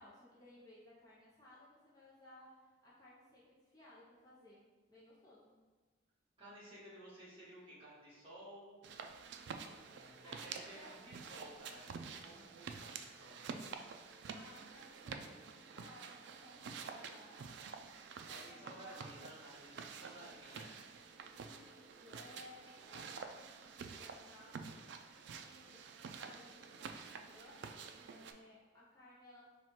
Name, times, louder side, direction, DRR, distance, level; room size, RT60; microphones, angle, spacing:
voice 1, 0.0-5.6 10.2-10.9 14.3-17.6 18.3-19.1 21.3-24.7 25.2-25.8 26.2-29.4, left 1 dB, 20° left, -7 dB, 0.6 m, -60 dB
voice 2, 6.4-8.8 9.7-13.4 18.3-20.7, right 1 dB, 30° right, -9 dB, 1.4 m, -55 dB
sound 1, 8.8-28.3, right 5 dB, 60° right, 0.3 m, -49 dB
4.3 x 2.3 x 4.4 m, 1.3 s
head